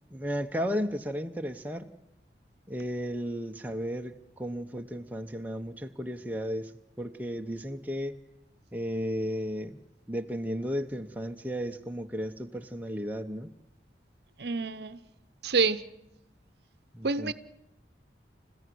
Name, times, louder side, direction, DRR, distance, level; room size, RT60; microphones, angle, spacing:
voice 1, 0.1-1.9 2.7-8.2 8.7-9.8 10.1-13.5 16.9-17.3, equal, 10° right, 4 dB, 0.8 m, -34 dB
voice 2, 14.4-15.0 15.4-15.8 17.0-17.3, right 4 dB, 65° right, 14 dB, 0.8 m, -27 dB
29.5 x 15.0 x 7.7 m, 0.90 s
head